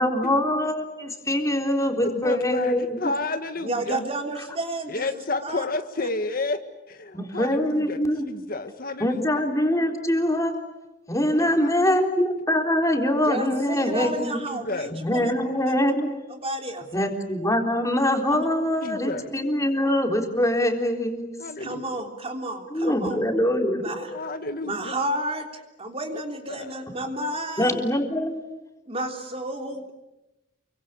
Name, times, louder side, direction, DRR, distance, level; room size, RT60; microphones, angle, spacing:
voice 1, 0.0-3.0 7.1-8.3 9.0-10.5 11.1-14.4 14.9-16.1 16.9-21.3 22.7-24.2 27.6-28.4, left 1 dB, 20° left, 3 dB, 3.8 m, -24 dB
voice 2, 2.0-4.1 4.9-6.6 6.9-8.0 8.3-9.2 11.4-12.1 13.9-14.0 14.5-15.0 18.8-19.3 21.4-21.9 24.1-25.0 26.5-26.7, left 2 dB, 50° left, 8 dB, 1.7 m, -31 dB
voice 3, 3.6-5.1 5.4-5.6 11.3-11.7 13.2-15.3 15.6-15.8 16.3-16.8 18.3-18.4 21.6-23.2 23.8-24.1 24.6-25.5 25.8-27.8 28.9-29.9, right 1 dB, 35° right, 4 dB, 3.4 m, -31 dB
29.5 x 24.0 x 8.4 m, 0.99 s
head